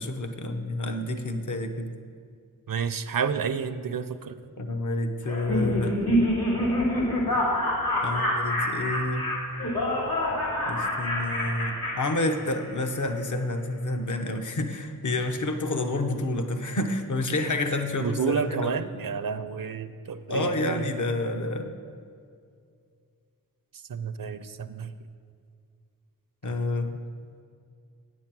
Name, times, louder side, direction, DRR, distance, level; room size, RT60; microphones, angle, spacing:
voice 1, 0.0-1.9 4.6-6.0 8.0-9.3 10.7-18.7 20.3-21.7 26.4-27.0, left 2 dB, 55° left, 6 dB, 0.8 m, -29 dB
voice 2, 2.7-4.4 18.0-20.9 23.9-24.9, right 6 dB, 70° right, 12 dB, 0.5 m, -30 dB
Laughter, 5.3-12.8, left 1 dB, 90° left, 2.8 m, -27 dB
9.1 x 8.4 x 6.0 m, 2.3 s
wide cardioid pair, 50°, 36 cm